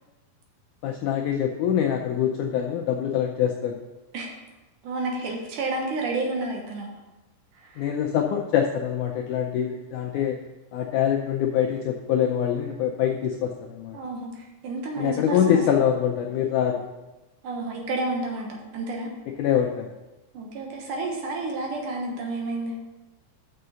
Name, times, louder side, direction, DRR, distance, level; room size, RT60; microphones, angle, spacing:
voice 1, 0.8-3.7 7.8-10.4 10.7-14.0 15.0-16.8 19.4-19.9, left 9 dB, 80° left, 1 dB, 1.8 m, -24 dB
voice 2, 4.8-6.9 7.6-7.9 13.9-15.8 17.4-19.1 20.3-22.7, right 2 dB, 65° right, 0 dB, 2.5 m, -30 dB
6.7 x 6.3 x 6.8 m, 1.1 s
omnidirectional pair, 4.3 m